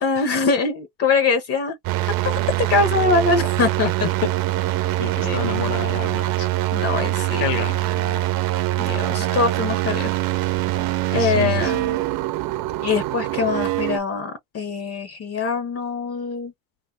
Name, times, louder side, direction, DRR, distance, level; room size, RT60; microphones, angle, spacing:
voice 1, 0.0-1.8 2.2-3.9 5.2-5.4 6.7-7.4 8.8-10.1 11.1-12.0 12.8-16.5, left 4 dB, 45° left, 0.8 m, -23 dB
sound 1, 1.8-14.0, right 15 dB, 75° right, 0.7 m, -23 dB
voice 2, 5.0-6.5 7.4-8.2 11.1-11.8, left 9 dB, 70° left, 1.1 m, -30 dB
2.6 x 2.5 x 3.7 m
cardioid pair, 140°, 35 cm